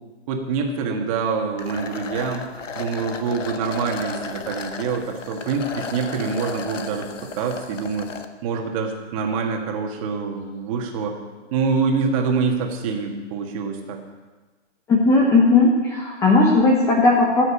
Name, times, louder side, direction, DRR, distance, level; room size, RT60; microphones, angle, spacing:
voice 1, 0.3-2.5 2.7-8.1 8.4-11.2 11.5-14.0, right 5 dB, 30° right, 3 dB, 1.8 m, -25 dB
sound 1, 1.6-8.3, left 4 dB, 85° left, 1.5 m, -34 dB
voice 2, 14.9-17.5, left 3 dB, 10° left, -1 dB, 0.8 m, -16 dB
15.0 x 6.5 x 8.7 m, 1.3 s
hypercardioid pair, 155°, 37 cm